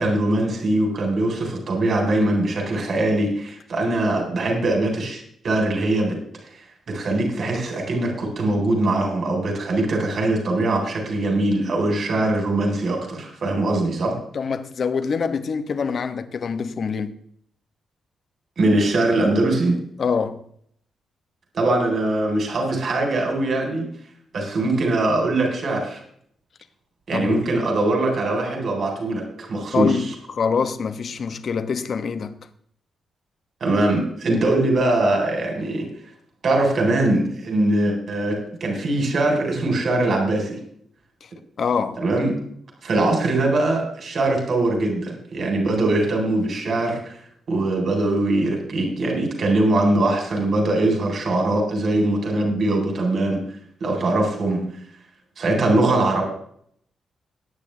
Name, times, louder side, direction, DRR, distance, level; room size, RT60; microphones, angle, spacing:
voice 1, 0.0-6.2 6.5-14.2 18.6-19.8 21.5-23.8 24.3-26.0 27.1-30.1 33.6-35.9 36.4-40.6 42.0-42.4 42.8-47.2 47.5-53.4 53.8-54.7 55.4-56.2, right 2 dB, 45° right, 3.9 m, -22 dB
voice 2, 14.3-17.2 20.0-20.4 27.1-27.5 29.7-32.4 41.6-42.0, left 5 dB, 45° left, 1.1 m, -25 dB
20.5 x 9.3 x 3.4 m
wide cardioid pair, 155°, 0 cm